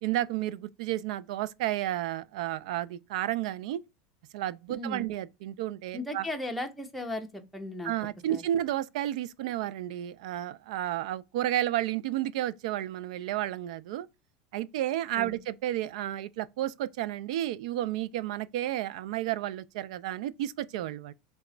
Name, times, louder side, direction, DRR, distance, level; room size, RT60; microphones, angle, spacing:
voice 1, 0.0-3.8 4.3-6.3 7.8-14.1 14.5-21.1, right 13 dB, 75° right, 0.3 m, -32 dB
voice 2, 4.7-5.0 5.9-7.9 8.3-8.4 15.2-15.4, left 1 dB, ahead, 0.6 m, -36 dB
3.4 x 3.0 x 3.7 m
supercardioid pair, 150°, 4 cm